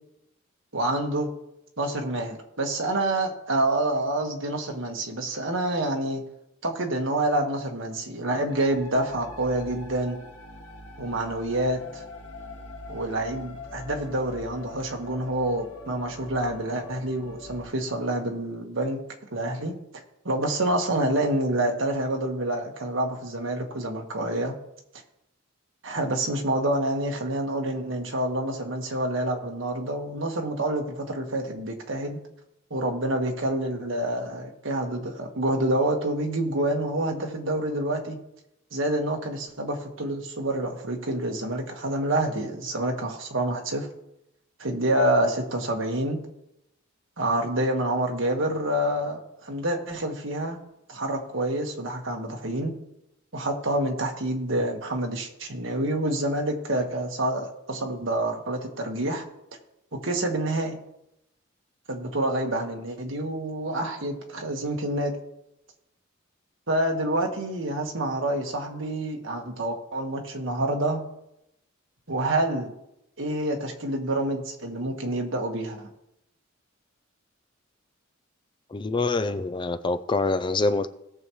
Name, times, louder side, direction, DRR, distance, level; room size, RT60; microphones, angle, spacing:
voice 1, 0.7-1.3 1.8-6.2 6.6-10.2 11.0-12.0 12.9-19.0 19.3-19.7 20.2-24.5 25.8-32.2 32.7-38.2 38.7-43.9 44.6-46.2 47.2-50.6 50.9-52.7 53.3-59.2 59.9-60.8 61.9-65.1 66.7-71.0 72.1-72.7 73.2-75.9, right 1 dB, 65° right, 2 dB, 1.6 m, -27 dB
sound 1, 8.5-17.7, left 2 dB, 75° left, 1.5 m, -43 dB
voice 2, 78.7-80.9, left 3 dB, 25° left, 11 dB, 0.4 m, -25 dB
17.5 x 6.9 x 3.2 m, 0.85 s
head